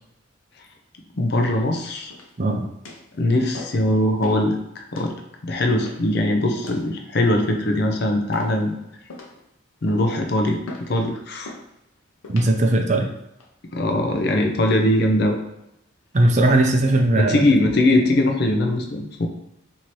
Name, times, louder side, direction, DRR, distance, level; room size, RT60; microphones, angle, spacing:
voice 1, 1.1-2.1 3.1-5.1 5.4-8.7 9.8-10.6 10.9-11.5 13.7-15.4 17.2-19.3, left 1 dB, 50° left, 3 dB, 0.5 m, -21 dB
sound 1, 2.1-2.5 2.8-3.1 3.5-3.9 4.2-4.5 4.9-5.1 5.8-6.1 6.6-6.9 7.4-7.9 8.3-8.7 9.1-9.4 9.9-10.2 10.7-10.9 11.4-11.7 12.2-12.5 13.1-13.5, left 2 dB, 90° left, 0.7 m, -40 dB
voice 2, 12.3-13.1 16.1-17.4, right 2 dB, 35° right, 3 dB, 0.4 m, -18 dB
4.2 x 2.8 x 3.1 m, 0.85 s
head